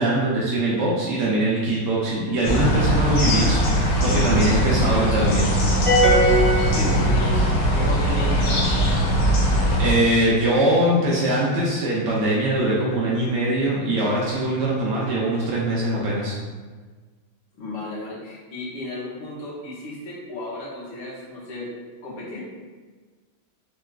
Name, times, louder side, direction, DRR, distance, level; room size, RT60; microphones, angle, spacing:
voice 1, 0.0-5.6 9.8-16.3, right 1 dB, 75° right, -5 dB, 1.0 m, -22 dB
sound 1, 2.4-9.9, equal, 90° left, 0.8 m, -20 dB
sound 2, 5.8-7.6, equal, ahead, 0.7 m, -20 dB
voice 2, 6.7-8.7 17.5-21.7 22.0-22.4, left 2 dB, 65° left, -8 dB, 1.6 m, -34 dB
3.9 x 2.2 x 2.3 m, 1.4 s
omnidirectional pair, 2.3 m